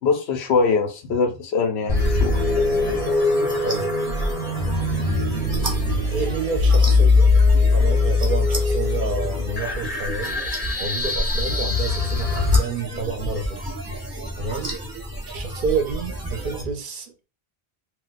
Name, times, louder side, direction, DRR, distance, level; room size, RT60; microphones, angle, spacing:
voice 1, 0.0-2.4, left 4 dB, 85° left, 0.9 m, -22 dB
sound 1, 1.9-12.6, left 3 dB, 40° left, 0.7 m, -21 dB
sound 2, 1.9-16.6, right 1 dB, 25° right, 0.7 m, -33 dB
sound 3, 2.6-16.7, left 1 dB, 5° right, 0.4 m, -39 dB
voice 2, 6.1-7.3 7.7-10.5 10.8-13.7 14.4-14.7 15.3-17.1, right 4 dB, 55° right, 0.7 m, -29 dB
2.3 x 2.2 x 3.9 m
omnidirectional pair, 1.1 m